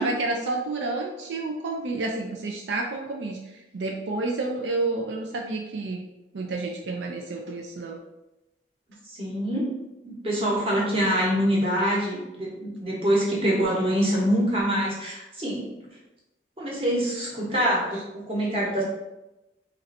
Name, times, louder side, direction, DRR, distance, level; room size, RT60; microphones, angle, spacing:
voice 1, 0.0-6.0 6.3-8.0, right 2 dB, 80° right, 2 dB, 0.4 m, -30 dB
voice 2, 9.0-9.7 10.0-15.7 16.6-18.8, equal, 30° right, -4 dB, 1.1 m, -25 dB
3.2 x 2.6 x 4.1 m, 0.97 s
head